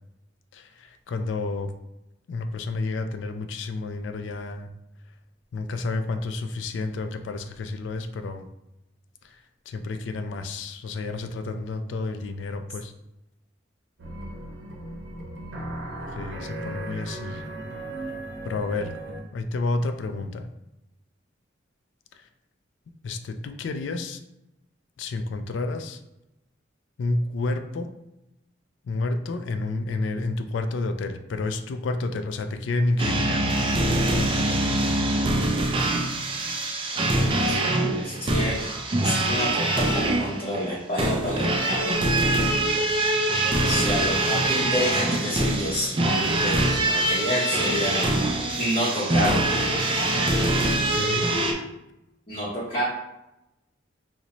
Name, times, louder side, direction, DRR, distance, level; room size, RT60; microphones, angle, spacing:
voice 1, 0.5-1.7 2.3-4.7 5.5-8.5 9.2-9.4 9.7-12.9 16.1-17.4 18.4-18.9 19.3-20.5 22.1-22.2 23.0-24.2 25.0-26.0 27.0-27.9 28.8-33.4 50.9-51.3, left 2 dB, 80° left, 8 dB, 0.3 m, -30 dB
sound 1, 14.0-19.2, right 1 dB, 75° right, 0.7 m, -36 dB
sound 2, 33.0-51.5, right 1 dB, 30° right, 0.4 m, -24 dB
voice 2, 37.5-38.7 39.0-42.0 43.6-48.0 48.6-49.5 52.3-52.8, equal, 35° left, -8 dB, 0.7 m, -29 dB
3.9 x 2.1 x 2.9 m, 0.90 s
head